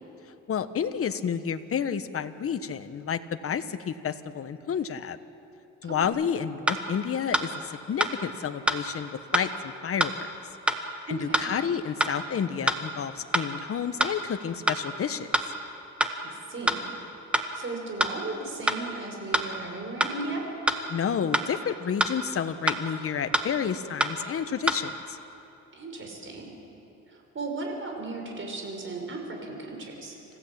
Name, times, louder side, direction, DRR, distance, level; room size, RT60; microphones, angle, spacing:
voice 1, 0.5-5.2 5.8-7.5 7.9-10.3 11.1-15.4 20.9-25.2, left 7 dB, 50° left, 11 dB, 1.2 m, -30 dB
sound 1, 6.0-6.1 6.7-6.8 7.3-7.5 8.0-8.1 8.7-8.8 9.3-9.5 10.0-10.1 10.7-10.8 11.3-11.5 12.0-12.1 12.7-12.8 13.3-13.5 14.0-14.1 14.7-14.8 15.3-15.5 16.0-16.1 16.7-16.8 17.3-17.5 18.0-18.1 18.7-18.8 19.3-19.5 20.0-20.1 20.7-20.8 21.3-21.5 22.0-22.1 22.7-22.8 23.3-23.5 24.0-24.1 24.7-24.8, equal, 5° right, 1.7 m, -25 dB
voice 2, 11.1-11.5 16.2-16.9 17.5-20.5 25.7-26.5 27.1-30.2, right 3 dB, 40° right, 2 dB, 5.7 m, -36 dB
26.5 x 16.0 x 8.7 m, 2.9 s
cardioid pair, 90°, 30 cm